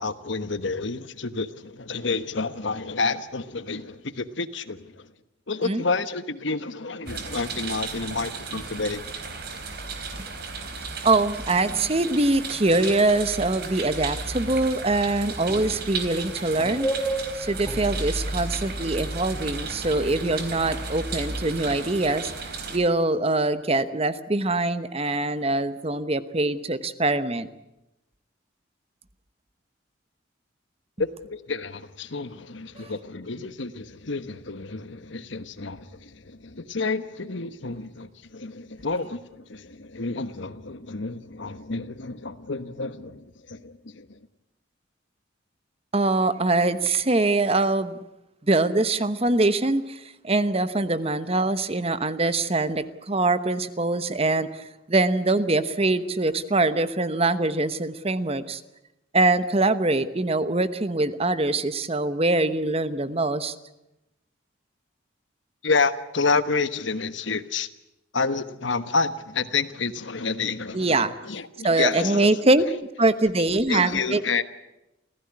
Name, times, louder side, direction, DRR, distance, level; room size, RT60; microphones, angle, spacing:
voice 1, 0.0-4.9 5.5-9.1 31.0-44.2 65.6-67.7 68.1-72.5 73.5-74.4, left 4 dB, 65° left, 13 dB, 1.2 m, -29 dB
sound 1, 7.0-22.8, right 3 dB, 55° right, 3.8 m, -34 dB
voice 2, 11.0-16.9 17.3-22.3 22.7-27.5 32.8-32.9 45.9-48.0 48.5-58.6 59.1-63.5 70.7-71.1 71.6-72.7 73.0-74.2, right 2 dB, 30° right, 13 dB, 1.0 m, -23 dB
sound 2, 12.7-16.1 16.5-18.2, right 1 dB, 5° left, 4.7 m, -33 dB
28.5 x 15.5 x 9.8 m, 0.93 s
head